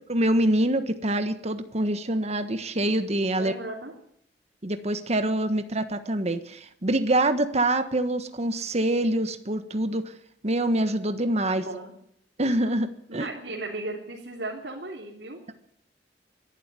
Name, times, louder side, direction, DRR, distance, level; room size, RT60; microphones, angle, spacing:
voice 1, 0.0-3.5 4.6-10.1 10.4-11.6 12.4-13.3, right 1 dB, 40° right, 10 dB, 1.4 m, -25 dB
voice 2, 3.4-3.9 11.5-11.9 13.2-15.4, right 2 dB, 75° right, -1 dB, 3.4 m, -36 dB
22.0 x 12.0 x 9.6 m, 0.71 s
head